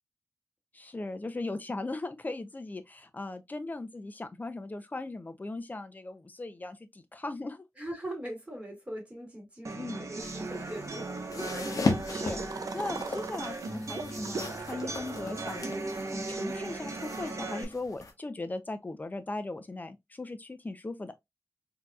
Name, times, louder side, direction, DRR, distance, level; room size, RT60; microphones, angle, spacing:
voice 1, 0.7-7.6 9.7-10.1 12.1-12.4 12.7-15.7 16.1-21.1, left 2 dB, 30° left, 0.6 m, -38 dB
voice 2, 7.8-11.1 11.3-11.6, right 1 dB, 20° right, 2.3 m, -41 dB
sound 1, 9.6-17.6, right 2 dB, 60° right, 1.0 m, -37 dB
sound 2, 10.2-18.1, left 3 dB, 75° left, 0.9 m, -37 dB
sound 3, 12.1-17.2, right 5 dB, 85° right, 0.4 m, -43 dB
4.3 x 2.8 x 2.4 m
wide cardioid pair, 80°, 6 cm